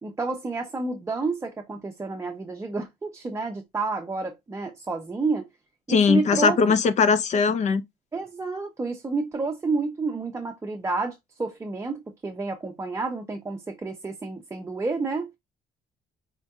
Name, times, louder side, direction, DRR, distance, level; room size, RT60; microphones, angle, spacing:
voice 1, 0.0-5.5 5.9-6.6 8.1-15.3, right 3 dB, 20° right, 0.6 m, -30 dB
voice 2, 5.9-7.8, left 5 dB, 45° left, 0.6 m, -20 dB
4.4 x 2.6 x 2.3 m
cardioid pair, 100°, 16 cm